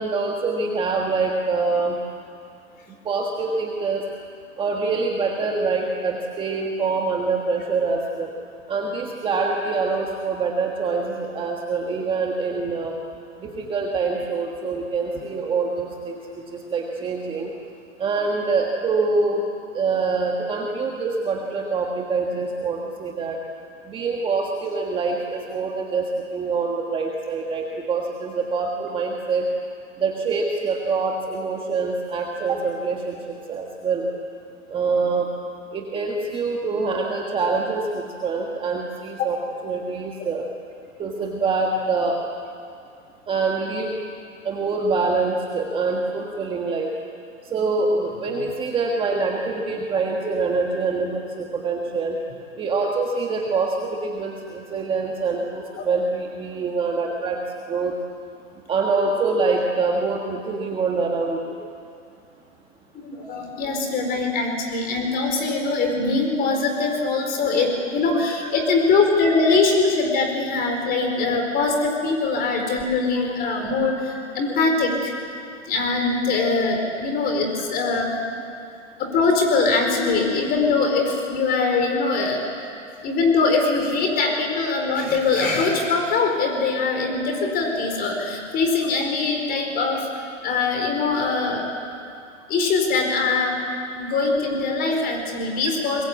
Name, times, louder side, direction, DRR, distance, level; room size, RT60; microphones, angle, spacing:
voice 1, 0.0-2.0 3.0-4.0 4.6-8.3 8.7-12.9 13.4-17.5 18.0-19.5 19.7-23.4 23.9-29.4 30.0-34.1 34.7-35.3 35.7-40.4 41.0-42.2 43.3-44.0 44.4-46.9 47.5-52.2 52.6-57.9 58.7-61.5 68.4-68.5, right 4 dB, 15° right, 0 dB, 1.6 m, -25 dB
voice 2, 63.0-75.1 75.6-78.2 79.0-82.4 83.0-90.1 90.4-91.7 92.5-93.6 93.9-96.0, left 3 dB, 25° left, 3 dB, 4.4 m, -22 dB
24.5 x 22.0 x 8.4 m, 2.4 s
hypercardioid pair, 145°, 39 cm